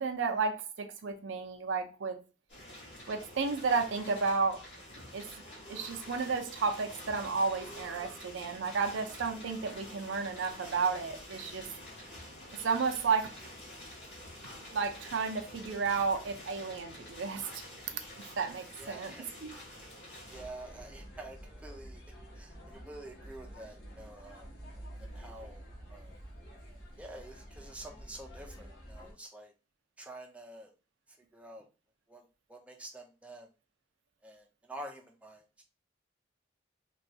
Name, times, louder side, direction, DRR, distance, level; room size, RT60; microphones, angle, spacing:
voice 1, 0.0-2.2 3.1-4.6 5.1-5.3 5.7-11.7 12.6-13.3 14.7-19.1 19.4-19.5, right 4 dB, 85° right, 0.5 m, -32 dB
sound 1, 2.5-21.9, left 1 dB, 70° left, 1.5 m, -49 dB
sound 2, 3.6-5.0 5.4-6.6 7.4-8.7, equal, 20° left, 0.8 m, -55 dB
voice 2, 18.8-19.3 20.3-22.0 22.3-24.5 25.0-26.1 27.0-29.5 30.0-30.7 31.3-31.7 32.1-32.2 32.5-33.5 34.2-35.4, right 1 dB, 5° right, 0.4 m, -48 dB
sound 3, 20.3-29.1, equal, 85° left, 1.1 m, -49 dB
3.0 x 2.3 x 2.6 m
head